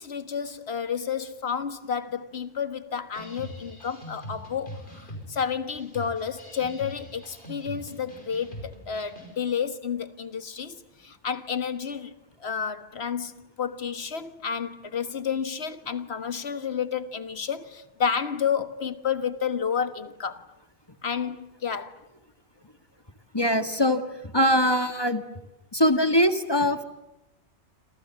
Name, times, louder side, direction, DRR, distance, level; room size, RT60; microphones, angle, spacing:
voice 1, 0.0-12.1 12.4-13.3 13.6-20.4 21.0-22.0, left 7 dB, 65° left, 1.7 m, -31 dB
sound 1, 3.1-9.4, equal, 45° left, 6.6 m, -42 dB
voice 2, 23.3-25.2 25.7-26.8, equal, 20° left, 1.7 m, -22 dB
28.0 x 27.0 x 7.5 m
omnidirectional pair, 1.2 m